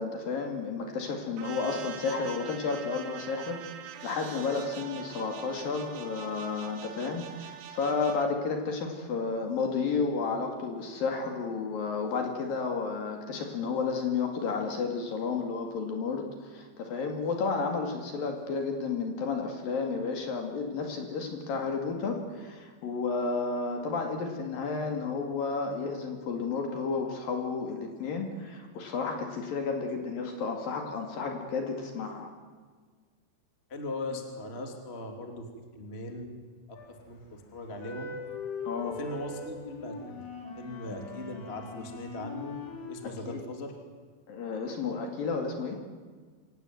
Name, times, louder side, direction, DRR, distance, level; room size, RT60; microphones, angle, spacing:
voice 1, 0.0-3.6 4.0-32.3 38.7-39.0 43.3-43.4 44.3-45.8, left 4 dB, 55° left, 3 dB, 3.7 m, -32 dB
sound 1, 1.4-8.3, right 9 dB, 85° right, 3.8 m, -44 dB
voice 2, 33.7-35.5 35.7-36.4 36.7-36.8 37.1-38.1 38.8-40.2 40.6-42.5 42.9-43.7, left 2 dB, 20° left, 4 dB, 2.0 m, -39 dB
sound 2, 36.8-37.2 37.7-43.0, left 4 dB, 70° left, 5.5 m, -41 dB
26.5 x 17.0 x 9.3 m, 1.5 s
omnidirectional pair, 5.4 m